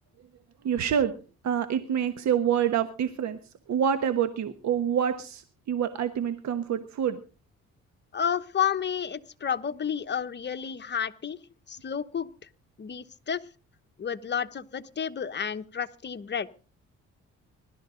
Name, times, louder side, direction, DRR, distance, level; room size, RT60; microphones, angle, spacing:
voice 1, 0.6-1.1 1.4-3.4 3.7-7.2, right 8 dB, 65° right, 9 dB, 1.3 m, -27 dB
voice 2, 8.1-11.4 11.7-12.3 12.8-13.4 14.0-16.5, left 8 dB, 35° left, 10 dB, 1.0 m, -31 dB
21.0 x 12.5 x 3.8 m, 0.37 s
cardioid pair, 90°, 30 cm